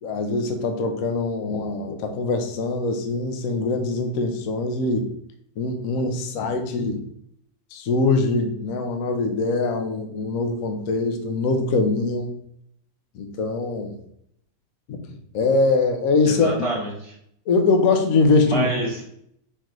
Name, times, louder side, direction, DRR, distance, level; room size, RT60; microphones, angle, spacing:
voice 1, 0.0-5.1 5.6-7.0 7.7-12.3 13.1-14.0 15.3-16.7 17.5-18.7, left 3 dB, 65° left, 5 dB, 0.9 m, -22 dB
voice 2, 16.3-17.1 18.5-19.0, right 1 dB, 30° left, -5 dB, 0.5 m, -27 dB
4.5 x 3.8 x 3.0 m, 0.71 s
omnidirectional pair, 2.1 m